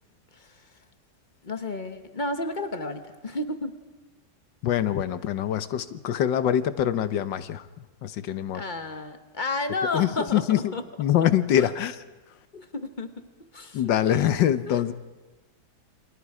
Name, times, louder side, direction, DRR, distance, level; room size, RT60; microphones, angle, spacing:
voice 1, 0.3-0.7 1.4-3.8 8.5-10.8 11.6-11.7 12.5-13.3 13.5-14.3 14.7-14.9, left 2 dB, 30° left, 7 dB, 1.3 m, -32 dB
voice 2, 4.6-7.7 8.0-8.6 9.9-10.7 11.0-12.0 13.7-14.9, left 10 dB, 85° left, 12 dB, 1.6 m, -24 dB
29.0 x 25.5 x 4.9 m, 1.2 s
omnidirectional pair, 1.9 m